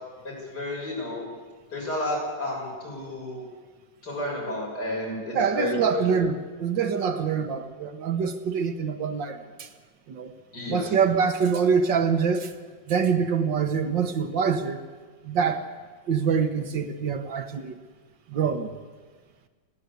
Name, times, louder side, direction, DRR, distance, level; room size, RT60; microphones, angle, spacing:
voice 1, 0.2-1.2 1.7-3.4 4.0-6.1 10.5-10.9, left 1 dB, 60° left, 7.3 m, -31 dB
voice 2, 5.3-9.7 10.1-10.3 10.7-12.5 12.9-14.8 15.2-15.6 16.1-17.7 18.3-18.7, right 6 dB, 75° right, 2.0 m, -25 dB
29.5 x 10.5 x 8.4 m
omnidirectional pair, 2.0 m